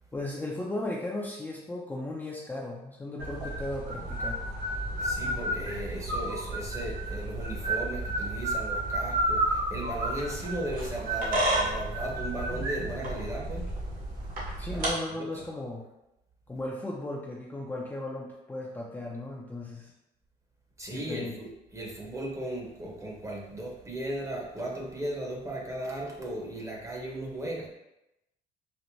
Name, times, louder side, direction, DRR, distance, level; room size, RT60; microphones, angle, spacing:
voice 1, 0.1-4.4 14.6-15.8 16.5-19.9 20.9-21.3, left 2 dB, 10° left, -4 dB, 0.4 m, -36 dB
sound 1, 3.2-14.9, right 1 dB, 60° right, 1.3 m, -31 dB
voice 2, 5.0-13.7 14.6-14.9 15.1-15.3 20.8-27.7, right 1 dB, 20° right, -1 dB, 0.8 m, -36 dB
4.4 x 2.1 x 2.7 m, 0.89 s
cardioid pair, 110°, 17 cm